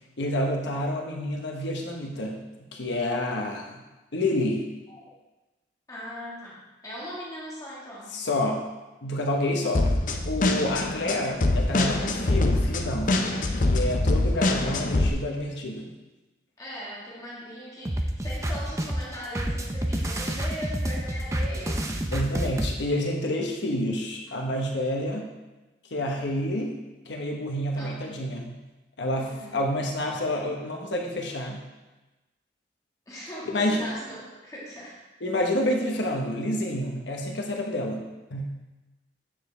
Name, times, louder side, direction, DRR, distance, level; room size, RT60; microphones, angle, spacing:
voice 1, 0.2-2.4 2.7-3.8 4.1-4.7 8.1-8.6 9.0-9.9 10.2-13.4 13.7-15.9 22.1-25.3 25.9-26.7 27.0-28.6 29.0-31.6 33.5-33.8 35.2-38.0 38.3-38.5, left 1 dB, 80° left, 0 dB, 1.2 m, -28 dB
voice 2, 5.9-8.1 16.6-21.8 27.8-28.2 29.2-29.6 33.1-35.0, equal, 20° left, -6 dB, 1.8 m, -39 dB
sound 1, 9.7-15.1, left 2 dB, 45° left, 0.6 m, -24 dB
sound 2, 17.9-22.7, right 1 dB, 15° right, 0.5 m, -29 dB
9.1 x 7.0 x 3.4 m, 1.1 s
head